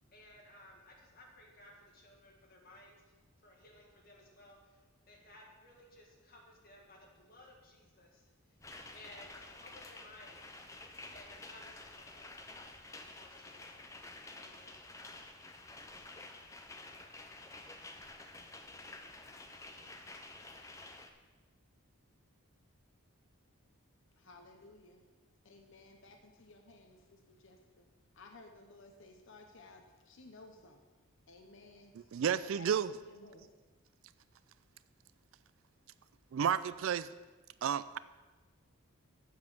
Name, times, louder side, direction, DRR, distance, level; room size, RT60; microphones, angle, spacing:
voice 1, 0.1-3.2 3.4-8.6 8.9-10.5 11.1-12.4 13.0-13.8 14.4-14.8, left 1 dB, 40° left, -1 dB, 1.8 m, -58 dB
sound 1, 8.6-21.1, left 2 dB, 15° left, 0.5 m, -50 dB
voice 2, 24.2-25.0 25.4-27.0 27.3-27.8 28.1-30.8 31.3-31.9 32.4-32.7 32.9-33.5, left 2 dB, 55° left, 4 dB, 0.8 m, -56 dB
voice 3, 31.9-32.9 36.3-37.1 37.6-38.0, right 8 dB, 60° right, 16 dB, 0.3 m, -32 dB
7.7 x 7.3 x 6.0 m, 1.3 s
head